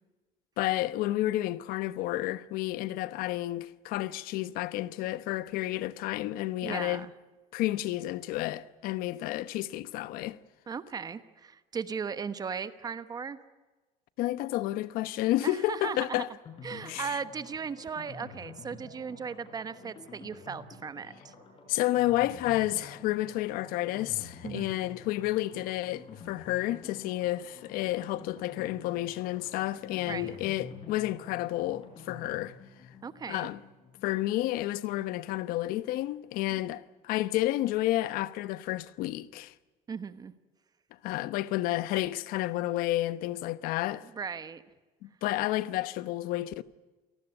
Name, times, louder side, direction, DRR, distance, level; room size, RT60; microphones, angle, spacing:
voice 1, 0.6-7.1 7.5-10.4 14.2-16.3 16.9-17.2 21.7-32.6 33.3-33.6 34.0-39.5 41.0-44.1 45.0-46.6, left 16 dB, 75° left, 1.0 m, -31 dB
voice 2, 6.6-7.1 10.7-13.4 15.4-16.2 16.6-21.3 24.4-24.8 30.1-30.4 33.0-33.5 36.5-36.8 39.9-40.3 44.1-44.6, right 6 dB, 25° right, 1.1 m, -37 dB
sound 1, 16.4-35.1 35.3-35.4 35.7-35.8, left 4 dB, 35° left, 6.1 m, -49 dB
28.5 x 19.0 x 8.0 m
cardioid pair, 150°, 15 cm